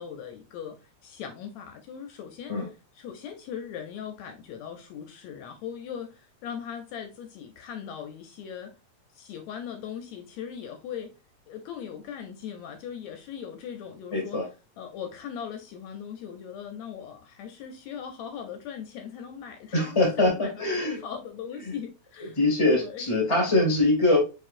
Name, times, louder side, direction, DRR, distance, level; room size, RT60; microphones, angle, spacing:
voice 1, 0.0-2.7 2.9-8.7 9.1-11.1 11.5-14.4 14.8-22.4 22.7-23.0, left 8 dB, 75° left, 1.8 m, -39 dB
voice 2, 14.1-14.4 19.7-21.0 21.6-21.7 22.4-24.2, left 2 dB, 15° left, 1.2 m, -23 dB
4.6 x 4.4 x 2.5 m
omnidirectional pair, 3.4 m